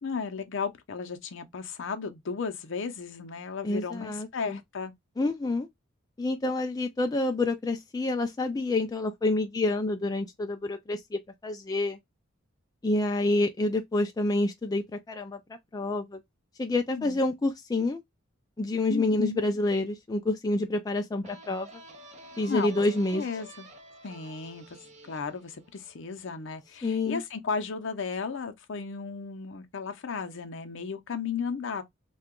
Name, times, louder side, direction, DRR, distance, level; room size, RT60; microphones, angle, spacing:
voice 1, 0.0-4.9 16.9-17.2 18.9-19.4 22.5-22.7 23.1-23.7 24.0-24.6 25.1-31.8, left 5 dB, 65° left, 0.6 m, -34 dB
voice 2, 3.6-4.6 5.2-5.7 6.2-12.0 12.8-15.4 15.7-16.2 16.6-18.0 18.6-21.7 22.4-23.2 26.8-27.2, left 2 dB, 20° left, 0.3 m, -28 dB
sound 1, 21.2-26.7, right 1 dB, 35° right, 0.7 m, -50 dB
2.8 x 2.3 x 3.6 m
head